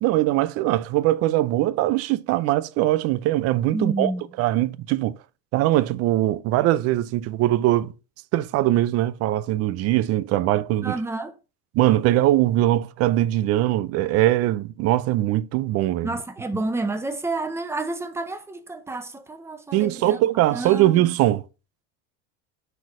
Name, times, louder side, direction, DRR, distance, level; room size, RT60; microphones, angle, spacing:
voice 1, 0.0-4.1 4.4-5.2 5.5-7.9 8.3-11.0 11.7-16.2 19.7-21.4, right 15 dB, 45° right, 0.5 m, -21 dB
voice 2, 3.7-4.2 10.8-11.3 16.0-20.2 20.5-21.0, right 2 dB, 5° right, 0.7 m, -29 dB
6.3 x 4.6 x 4.8 m
supercardioid pair, 130°, 35 cm